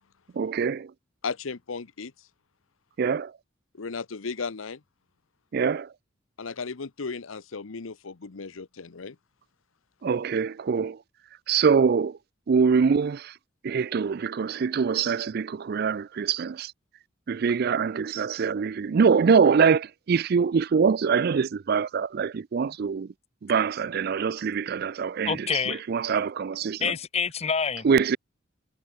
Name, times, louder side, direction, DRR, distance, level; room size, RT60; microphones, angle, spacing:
voice 1, 0.3-0.9 3.0-3.3 5.5-5.9 10.0-11.0 11.5-12.2 12.5-13.4 13.6-16.7 17.3-23.1 23.4-27.0 27.8-28.2, right 6 dB, 50° right, 0.4 m, -24 dB
voice 2, 1.2-2.1 3.8-4.8 6.4-9.2, left 4 dB, 90° left, 0.9 m, -35 dB
voice 3, 25.3-25.8 26.8-27.9, left 6 dB, 30° left, 0.7 m, -27 dB
head